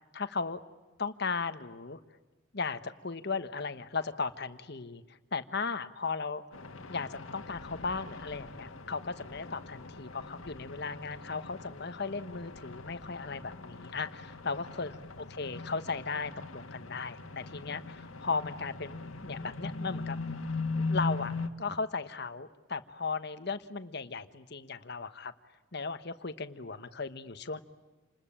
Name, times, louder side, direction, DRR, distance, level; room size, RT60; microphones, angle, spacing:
voice 1, 0.1-0.6 1.0-2.0 2.5-6.4 6.9-20.2 20.9-25.3 25.7-27.6, left 4 dB, 55° left, 11 dB, 1.2 m, -36 dB
sound 1, 6.5-21.5, left 3 dB, 85° left, 1.8 m, -40 dB
28.5 x 20.5 x 8.8 m, 1.2 s
head